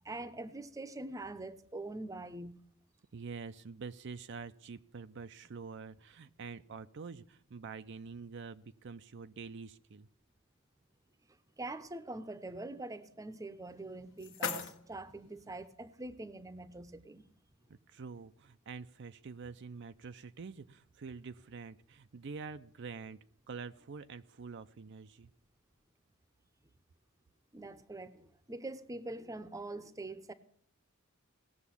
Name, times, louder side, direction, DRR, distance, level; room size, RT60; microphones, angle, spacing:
voice 1, 0.0-2.6 11.6-17.2 27.5-30.3, right 2 dB, 15° right, 0.7 m, -44 dB
voice 2, 3.1-10.1 17.7-23.2 23.5-25.3, right 5 dB, 60° right, 0.5 m, -46 dB
sound 1, 13.7-15.7, left 5 dB, 60° left, 1.2 m, -42 dB
18.0 x 7.0 x 8.5 m
head